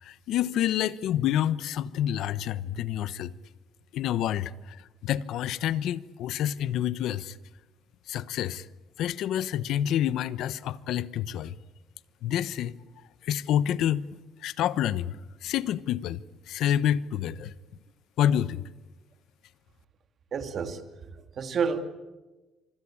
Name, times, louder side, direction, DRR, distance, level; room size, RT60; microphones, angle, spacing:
voice 1, 0.0-3.3 3.9-7.4 8.1-8.7 9.0-11.5 12.2-12.7 13.2-14.1 14.4-15.2 15.4-17.5 18.2-18.6, left 11 dB, 65° left, 1.1 m, -28 dB
voice 2, 20.3-21.8, right 6 dB, 40° right, 2.6 m, -30 dB
26.0 x 25.5 x 8.8 m
cardioid pair, 155°, 0 cm